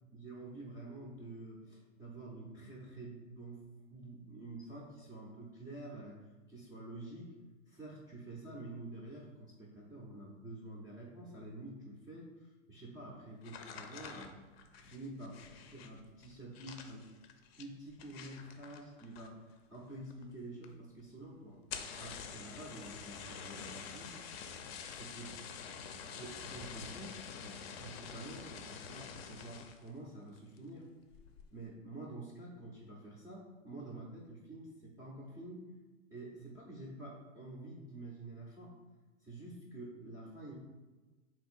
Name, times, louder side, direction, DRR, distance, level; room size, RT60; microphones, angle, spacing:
voice 1, 0.1-3.6 3.9-6.2 6.5-7.3 7.7-14.4 14.7-15.4 15.7-17.1 17.6-19.4 19.7-21.6 22.0-24.2 24.9-25.4 26.0-30.9 31.5-35.7 36.1-38.7 39.2-40.5, right 2 dB, 10° right, -7 dB, 0.3 m, -48 dB
sound 1, 13.4-19.5 19.8-20.3 20.6-20.7 21.0-21.1 21.6-29.9 30.3-30.7 31.1-31.5, left 6 dB, 50° left, 0.5 m, -47 dB
3.8 x 2.6 x 4.2 m, 1.2 s
hypercardioid pair, 130°, 39 cm